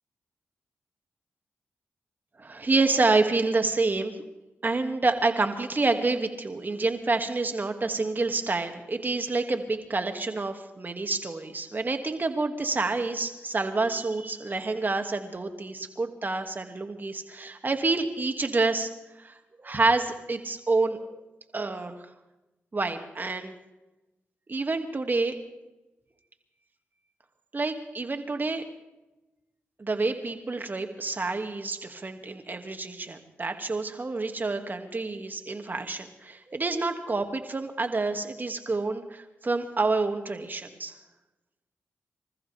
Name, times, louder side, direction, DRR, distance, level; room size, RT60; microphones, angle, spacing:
voice 1, 2.4-4.2 4.6-18.9 19.2-19.4 19.6-21.2 21.5-22.0 22.7-23.5 24.5-25.4 27.5-28.6 29.8-40.9, right 3 dB, 40° right, 6 dB, 2.1 m, -28 dB
26.5 x 14.5 x 3.4 m, 1.0 s
supercardioid pair, 45°, 5 cm